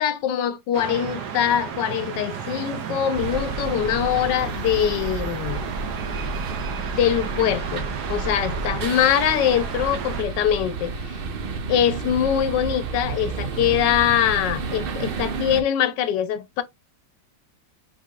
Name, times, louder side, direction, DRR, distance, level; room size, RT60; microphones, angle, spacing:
voice 1, 0.0-5.7 6.9-11.2 11.7-16.6, left 10 dB, 90° left, 1.3 m, -23 dB
sound 1, 0.7-10.2, right 7 dB, 70° right, 1.4 m, -33 dB
sound 2, 3.1-15.6, right 4 dB, 90° right, 0.5 m, -31 dB
4.7 x 4.1 x 2.3 m
omnidirectional pair, 1.8 m